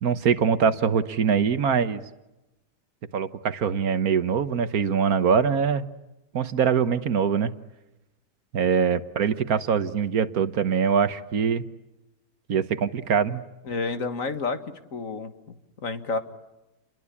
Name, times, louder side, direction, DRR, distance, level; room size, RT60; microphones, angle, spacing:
voice 1, 0.0-2.0 3.1-5.9 6.3-7.5 8.5-11.6 12.5-13.4, right 7 dB, 60° right, 12 dB, 1.5 m, -23 dB
voice 2, 13.6-14.6 14.9-16.2, left 4 dB, 50° left, 9 dB, 2.0 m, -30 dB
29.0 x 22.0 x 8.5 m, 0.99 s
omnidirectional pair, 1.8 m